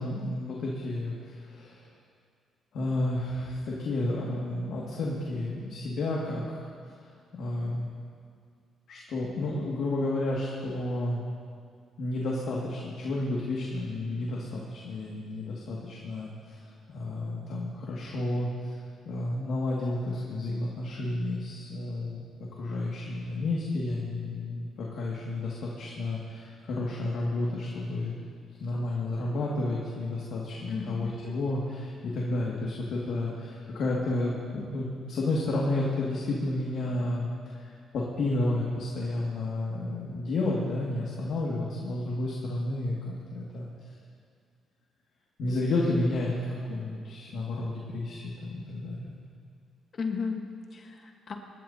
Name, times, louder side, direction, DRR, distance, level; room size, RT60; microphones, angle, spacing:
voice 1, 0.0-1.9 2.7-6.7 7.4-7.9 8.9-11.2 12.0-18.8 19.1-22.2 22.5-28.1 28.6-43.7 45.4-49.1, left 2 dB, 70° left, -4 dB, 2.1 m, -31 dB
voice 2, 30.7-31.1 49.9-51.3, left 5 dB, 50° left, 3 dB, 1.4 m, -34 dB
26.0 x 12.5 x 2.9 m, 2.2 s
cardioid pair, 90°, 0 cm